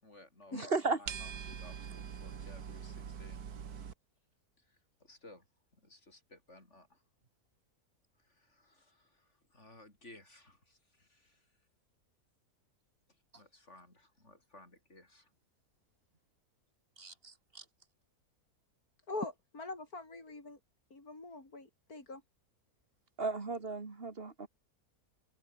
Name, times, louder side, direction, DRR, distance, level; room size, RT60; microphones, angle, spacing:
voice 1, 0.0-3.5 4.6-5.5 5.7-7.0 8.2-11.5 13.1-15.3, left 2 dB, 45° left, 6.8 m, -58 dB
voice 2, 0.5-1.0 17.0-17.6 23.2-24.5, right 3 dB, 40° right, 2.2 m, -35 dB
sound 1, 1.1-3.9, right 7 dB, 75° right, 2.0 m, -43 dB
voice 3, 19.1-20.6 20.9-22.2, left 2 dB, 70° left, 5.9 m, -43 dB
omnidirectional pair, 1.6 m